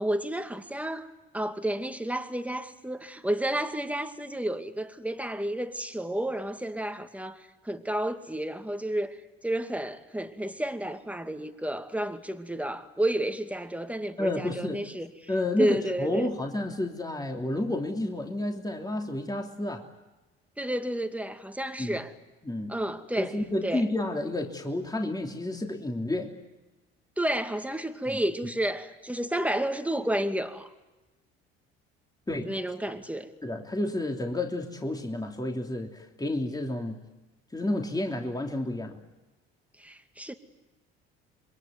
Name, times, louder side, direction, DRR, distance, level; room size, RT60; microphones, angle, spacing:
voice 1, 0.0-15.1 15.6-16.3 20.6-22.1 22.7-23.4 23.6-23.9 27.2-30.7 32.4-33.3 39.8-40.3, right 1 dB, 5° right, 2.4 m, -31 dB
voice 2, 14.2-14.8 15.3-19.9 21.8-22.0 22.4-22.8 23.2-26.4 28.1-28.2 32.3-32.5 33.4-37.0 37.5-39.0, left 1 dB, 15° left, 3.1 m, -30 dB
27.0 x 22.0 x 9.5 m
hypercardioid pair, 65°, 30 cm